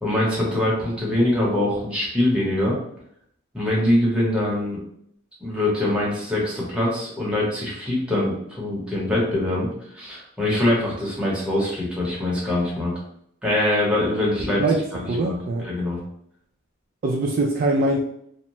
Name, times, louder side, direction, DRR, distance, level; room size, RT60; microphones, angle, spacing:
voice 1, 0.0-2.8 3.5-4.8 5.4-9.7 9.9-12.9 13.4-14.6 14.9-15.3 15.6-16.0, left 1 dB, 5° right, -6 dB, 0.9 m, -23 dB
voice 2, 15.1-15.7 17.0-18.0, right 2 dB, 45° right, -1 dB, 0.3 m, -22 dB
2.6 x 2.2 x 3.0 m, 0.69 s
head